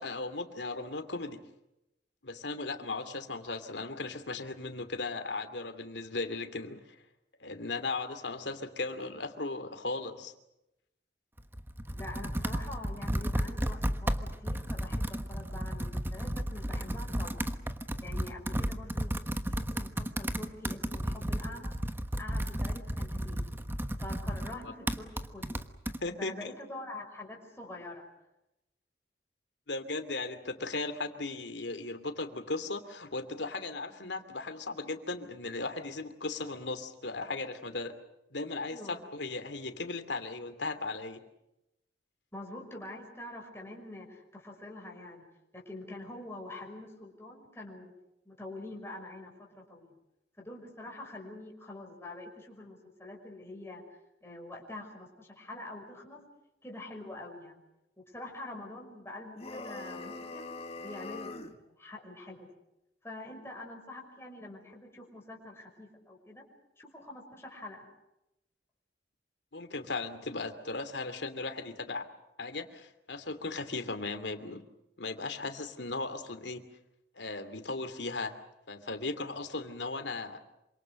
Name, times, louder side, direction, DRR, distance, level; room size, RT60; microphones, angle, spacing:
voice 1, 0.0-1.4 2.2-6.8 7.4-10.3 25.9-26.5 29.7-37.9 38.3-41.3 69.5-72.1 72.4-74.6 75.0-76.6 77.2-80.4, left 3 dB, 90° left, 9 dB, 2.7 m, -37 dB
Computer keyboard, 11.4-26.0, equal, 15° right, 1.3 m, -33 dB
voice 2, 11.9-17.5 18.0-19.1 19.5-21.8 22.2-23.5 24.0-25.5 26.2-28.0 38.6-39.0 42.3-45.2 45.5-47.9 48.2-50.0 50.4-53.8 54.2-56.2 56.6-57.6 58.1-60.5 60.8-62.5 63.0-66.5 66.8-67.8, left 2 dB, 15° left, -1 dB, 5.8 m, -45 dB
sound 1, 59.4-61.6, left 3 dB, 35° left, 1.8 m, -42 dB
27.5 x 26.0 x 6.5 m, 0.88 s
head